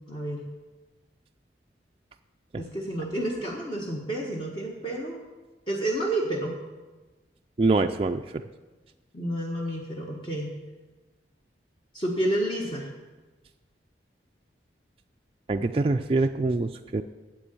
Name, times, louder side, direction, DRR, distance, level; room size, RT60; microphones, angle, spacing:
voice 1, 0.1-0.4 2.6-5.2 5.7-6.5 9.1-10.5 11.9-12.9, right 1 dB, 25° left, -1 dB, 1.3 m, -30 dB
voice 2, 7.6-8.4 15.5-17.0, right 3 dB, 30° right, 4 dB, 0.4 m, -24 dB
9.6 x 7.7 x 9.1 m, 1.2 s
head